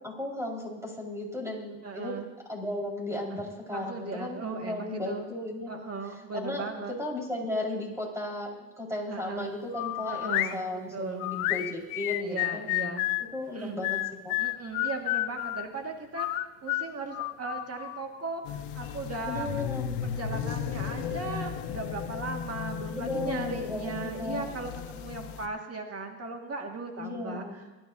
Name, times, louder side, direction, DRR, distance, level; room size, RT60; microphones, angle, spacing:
voice 1, 0.0-2.2 2.5-5.8 6.3-12.7 13.3-14.4 19.2-20.0 22.9-24.5 27.0-27.6, left 1 dB, 5° right, -1 dB, 4.9 m, -35 dB
voice 2, 1.8-2.3 3.3-3.4 3.7-5.3 5.7-7.0 9.1-9.5 10.1-10.6 10.9-11.3 12.2-13.1 13.5-13.8 14.4-16.3 16.6-19.5 20.0-27.5, right 3 dB, 35° right, 3 dB, 2.0 m, -37 dB
sound 1, 9.7-10.5 11.2-13.3 13.8-15.6 16.2-18.0, left 18 dB, 85° left, 0.6 m, -30 dB
sound 2, 18.4-25.5, left 8 dB, 70° left, 1.3 m, -35 dB
22.0 x 11.5 x 2.8 m, 1.2 s
supercardioid pair, 75°, 43 cm